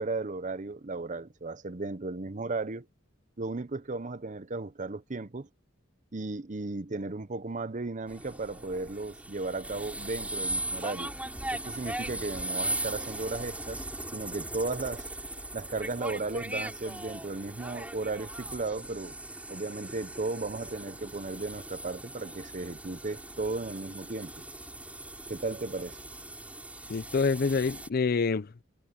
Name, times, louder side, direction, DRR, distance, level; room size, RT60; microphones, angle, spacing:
voice 1, 0.0-2.9 3.4-5.5 6.1-11.1 11.5-13.8 14.1-15.1 15.5-19.1 19.5-24.3 25.3-26.0, right 3 dB, 40° right, 0.8 m, -35 dB
sound 1, 8.1-27.9, right 1 dB, 5° right, 4.6 m, -39 dB
voice 2, 26.9-28.6, left 4 dB, 50° left, 0.5 m, -27 dB
head